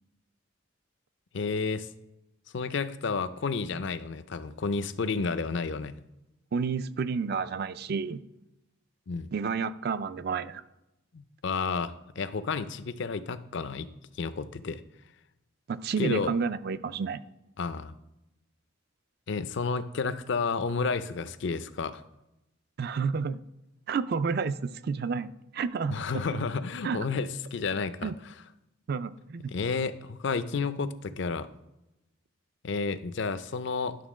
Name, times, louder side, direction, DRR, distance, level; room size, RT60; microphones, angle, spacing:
voice 1, 1.3-1.9 2.5-6.0 9.1-9.3 11.1-13.9 14.2-14.8 16.0-16.3 17.6-17.9 19.3-22.0 25.9-28.3 29.5-31.5 32.6-34.0, left 4 dB, 60° left, 13 dB, 0.5 m, -31 dB
voice 2, 6.5-8.2 9.3-10.6 15.7-17.2 22.8-23.4 23.9-26.4 26.8-27.1 28.0-28.2 28.9-29.5, right 5 dB, 50° right, 14 dB, 0.4 m, -30 dB
11.0 x 3.7 x 6.1 m, 0.92 s
head